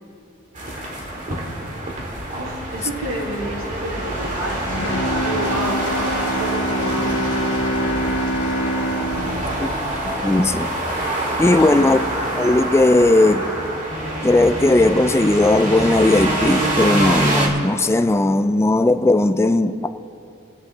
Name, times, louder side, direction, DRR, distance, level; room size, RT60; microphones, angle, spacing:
sound 1, 0.6-17.5, right 1 dB, 40° right, 2.0 m, -25 dB
voice 1, 2.4-7.2 8.9-9.5 11.4-11.9, right 1 dB, 90° right, 2.8 m, -30 dB
Bowed string instrument, 4.6-10.9 11.3-11.4, equal, 85° left, 1.3 m, -25 dB
voice 2, 10.0-10.8 11.4-12.0 12.3-13.5 14.2-19.9, left 2 dB, 15° left, 0.3 m, -17 dB
27.5 x 10.0 x 3.3 m
head